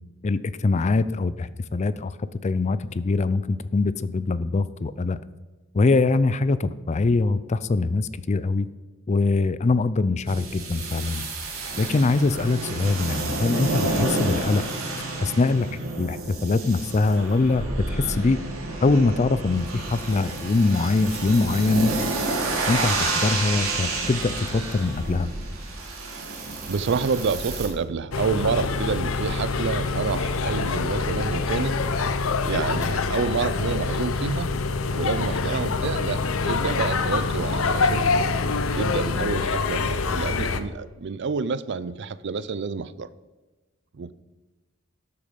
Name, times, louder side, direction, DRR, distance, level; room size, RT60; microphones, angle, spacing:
voice 1, 0.2-2.1 2.4-5.2 5.7-8.7 9.1-11.2 11.8-14.6 15.2-17.6 17.9-18.4 18.8-21.9 22.7-25.3, left 3 dB, 35° left, 16 dB, 0.4 m, -23 dB
sound 1, 10.3-27.7, right 2 dB, 85° right, 2.5 m, -30 dB
voice 2, 26.7-31.8 32.4-34.5 34.9-38.3 38.7-43.1 43.9-44.1, right 5 dB, 55° right, 17 dB, 0.5 m, -28 dB
sound 2, 28.1-40.6, left 4 dB, 70° left, 0.7 m, -25 dB
12.5 x 6.9 x 5.1 m, 1.2 s
head